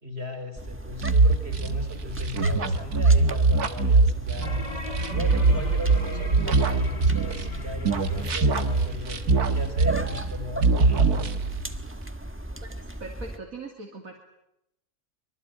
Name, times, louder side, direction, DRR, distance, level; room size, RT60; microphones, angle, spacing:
voice 1, 0.0-4.7 5.1-11.3, equal, 40° right, 7 dB, 4.4 m, -37 dB
sound 1, 0.6-13.4, right 1 dB, 10° right, 1.4 m, -36 dB
sound 2, 1.0-7.6 7.8-10.3 10.6-11.7, right 3 dB, 90° right, 2.2 m, -22 dB
sound 3, 4.4-10.1, left 1 dB, 25° left, 3.7 m, -39 dB
voice 2, 12.6-14.2, right 3 dB, 65° right, 1 dB, 3.2 m, -41 dB
25.5 x 23.0 x 9.2 m, 0.82 s
omnidirectional pair, 1.6 m